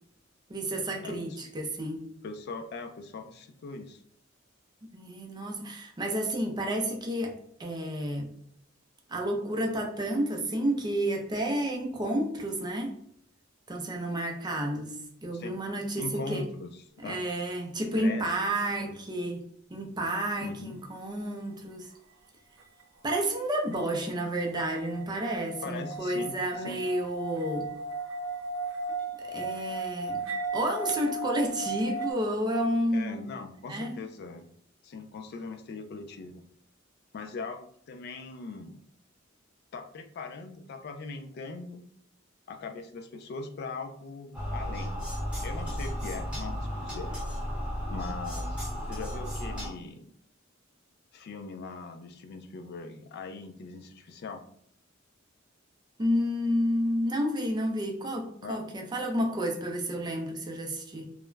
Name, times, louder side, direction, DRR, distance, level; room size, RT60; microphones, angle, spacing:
voice 1, 0.5-2.0 4.8-7.3 7.6-8.3 9.1-12.9 13.7-16.4 17.0-19.4 19.7-21.9 23.0-27.7 29.2-30.2 30.5-33.3 33.7-34.0 56.0-61.1, right 1 dB, 20° right, 2 dB, 0.4 m, -30 dB
voice 2, 1.0-1.4 2.2-4.0 15.3-15.6 16.0-17.2 17.9-18.6 18.8-19.0 20.4-20.8 25.6-26.8 32.9-34.5 34.8-36.4 37.1-38.8 39.7-41.8 42.5-45.0 45.4-47.1 47.9-48.6 48.9-50.0 51.1-54.4 58.4-58.7, left 4 dB, 55° left, 7 dB, 0.3 m, -40 dB
sound 1, 23.7-32.1, right 3 dB, 85° right, 0.5 m, -36 dB
sound 2, 44.3-49.7, equal, 5° right, 0.8 m, -34 dB
2.3 x 2.1 x 3.1 m, 0.66 s
head